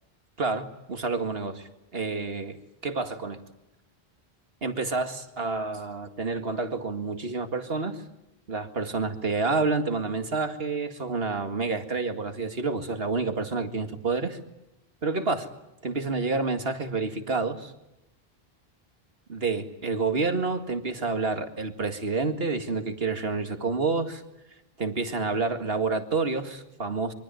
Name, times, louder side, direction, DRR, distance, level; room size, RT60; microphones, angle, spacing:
voice 1, 0.4-2.6 2.8-3.4 4.6-8.0 8.5-14.4 15.0-15.5 15.8-17.7 19.3-24.2 24.8-27.1, right 4 dB, 70° right, 8 dB, 2.3 m, -29 dB
25.5 x 24.0 x 9.2 m, 0.89 s
omnidirectional pair, 1.0 m